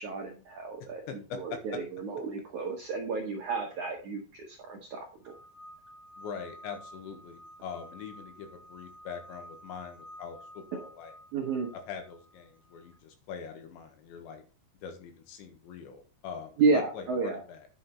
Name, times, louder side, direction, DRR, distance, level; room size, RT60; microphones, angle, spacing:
voice 1, 0.0-1.0 1.4-5.3 11.3-11.7 16.6-17.4, right 4 dB, 70° right, 1 dB, 1.8 m, -31 dB
voice 2, 1.1-1.6 6.2-11.1 11.9-14.4 14.8-17.7, left 6 dB, 80° left, 5 dB, 3.9 m, -43 dB
sound 1, 5.2-13.0, equal, 35° left, 2.9 m, -51 dB
10.5 x 6.1 x 4.3 m, 0.36 s
omnidirectional pair, 5.3 m